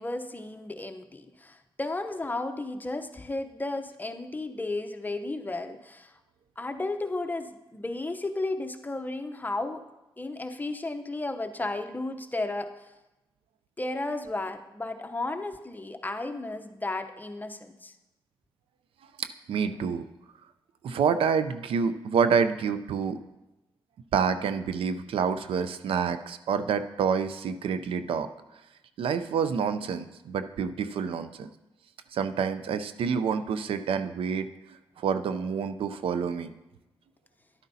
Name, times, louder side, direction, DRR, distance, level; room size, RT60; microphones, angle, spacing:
voice 1, 0.0-6.2 6.6-9.8 10.2-12.9 13.8-17.9, left 2 dB, 20° left, 6 dB, 0.8 m, -34 dB
voice 2, 19.2-20.0 20.8-23.2 24.1-28.3 29.0-31.5 32.1-34.5 35.0-36.5, right 6 dB, 75° right, 11 dB, 0.5 m, -28 dB
11.0 x 9.1 x 2.7 m, 1.0 s
cardioid pair, 65°, 9 cm